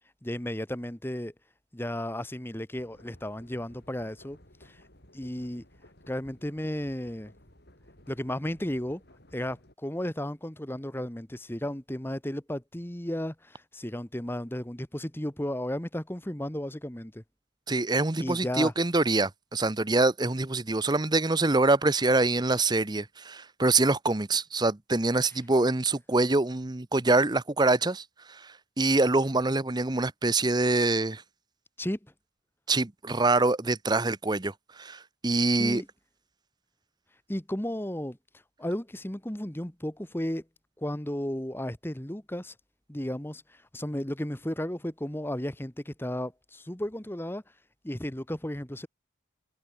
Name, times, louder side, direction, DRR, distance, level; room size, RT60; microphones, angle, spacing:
voice 1, 0.2-1.3 1.7-4.8 5.1-5.6 6.1-7.3 8.1-9.0 9.3-17.2 18.2-18.7 31.8-32.0 35.6-35.9 37.3-38.2 38.6-40.4 40.8-42.5 42.9-47.4 47.8-48.9, left 1 dB, 10° left, 1.2 m, -34 dB
sound 1, 2.7-9.7, left 1 dB, 50° left, 6.8 m, -57 dB
voice 2, 17.7-28.0 28.8-31.2 32.7-34.5 34.8-35.8, right 2 dB, 20° right, 0.7 m, -25 dB
head